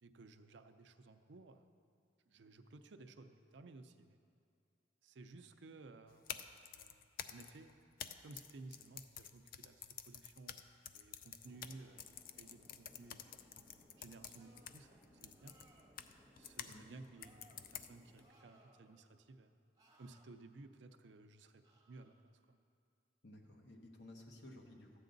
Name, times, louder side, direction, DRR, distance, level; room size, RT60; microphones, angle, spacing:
voice 1, 0.0-1.7 2.3-4.2 5.0-6.5 6.7-7.0 7.3-7.7 8.2-10.6 10.9-12.0 12.4-13.2 14.0-15.0 15.2-15.5 16.4-17.5 17.7-19.5 20.0-22.2 22.5-22.6, right 3 dB, 80° right, 8 dB, 0.6 m, -57 dB
sound 1, 6.1-16.8 17.2-18.2, left 9 dB, 55° left, 0.4 m, -51 dB
sound 2, 11.4-18.3, equal, ahead, 0.9 m, -66 dB
sound 3, 14.3-14.8 15.3-16.0 17.1-17.6 18.2-19.0 19.7-20.2 21.6-22.1, right 1 dB, 20° right, 1.3 m, -67 dB
voice 2, 23.2-25.0, left 1 dB, 70° left, 2 dB, 1.2 m, -55 dB
13.0 x 8.4 x 3.9 m, 2.4 s
head